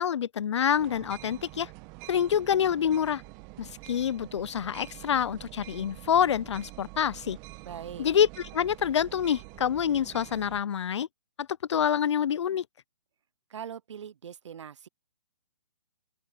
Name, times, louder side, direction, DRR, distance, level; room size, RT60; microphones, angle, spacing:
voice 1, 0.0-1.7 2.1-3.2 3.6-7.4 8.0-11.1 11.4-12.6, left 8 dB, 70° left, 0.5 m, -27 dB
sound 1, 0.8-10.6, right 23 dB, 20° right, 1.0 m, -46 dB
voice 2, 7.6-8.1 13.5-14.9, right 8 dB, 75° right, 0.6 m, -41 dB
open air
hypercardioid pair, 155°, 15 cm